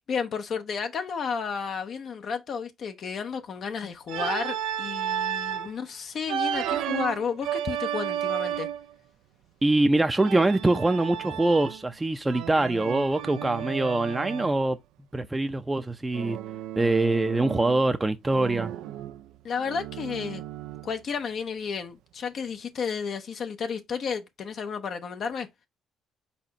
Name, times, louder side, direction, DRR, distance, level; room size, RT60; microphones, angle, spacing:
voice 1, 0.1-8.7 19.4-20.4 20.8-25.5, left 6 dB, 60° left, 0.6 m, -32 dB
Organ, 4.1-5.7 6.3-8.9 10.2-11.9 12.3-14.6 16.1-17.9 18.3-21.0, right 10 dB, 75° right, 0.3 m, -33 dB
voice 2, 9.6-14.8 15.1-16.4 16.8-18.7, right 2 dB, 20° right, 0.5 m, -24 dB
4.3 x 4.2 x 2.7 m
supercardioid pair, 60°, 0 cm